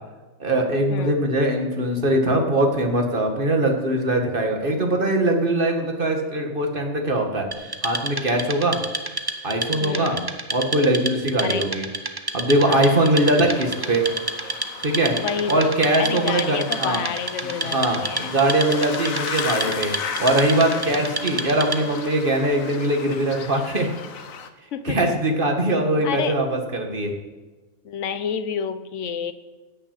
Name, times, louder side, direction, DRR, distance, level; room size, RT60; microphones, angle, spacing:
voice 1, 0.4-7.5 7.8-8.8 9.4-10.2 10.5-11.8 12.3-14.1 14.8-15.1 15.5-17.0 17.6-19.9 20.2-23.9 24.8-27.1, right 1 dB, 40° right, 3 dB, 2.1 m, -21 dB
Wood, 7.5-22.0, right 2 dB, 20° right, 0.7 m, -30 dB
voice 2, 9.8-10.3 11.4-11.7 12.6-13.0 15.2-15.7 16.0-18.4 20.9-21.1 24.7-25.1 26.0-26.4 27.8-29.3, left 6 dB, 65° left, 11 dB, 1.2 m, -29 dB
sound 1, 12.7-24.5, left 6 dB, 80° left, 1.4 m, -35 dB
16.5 x 6.7 x 8.9 m, 1.2 s
omnidirectional pair, 1.4 m